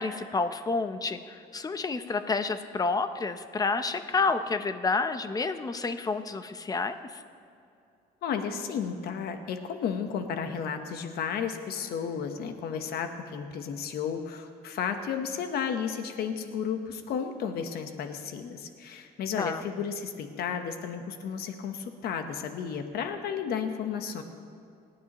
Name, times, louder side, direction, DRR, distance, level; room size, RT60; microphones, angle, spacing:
voice 1, 0.0-7.2 19.4-19.6, left 4 dB, 20° left, 9 dB, 0.7 m, -29 dB
voice 2, 8.2-24.2, left 7 dB, 70° left, 7 dB, 1.1 m, -33 dB
27.5 x 9.4 x 3.1 m, 2.5 s
cardioid pair, 110°, 17 cm